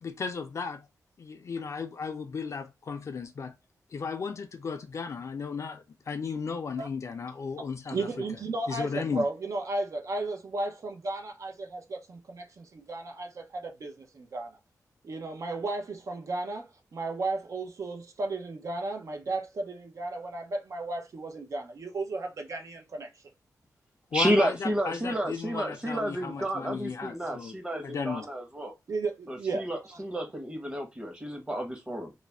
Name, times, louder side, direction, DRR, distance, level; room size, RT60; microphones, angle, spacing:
voice 1, 0.0-0.9 1.2-3.5 3.9-8.1 8.7-9.2 24.1-27.5 27.8-28.2, left 5 dB, 50° left, 0.4 m, -35 dB
voice 2, 7.9-14.6 15.0-23.2 26.4-26.5 28.9-30.0, right 2 dB, 55° right, 0.6 m, -34 dB
voice 3, 24.1-28.7 29.3-32.1, equal, 15° right, 0.9 m, -31 dB
2.4 x 2.1 x 3.2 m
wide cardioid pair, 100°, 6 cm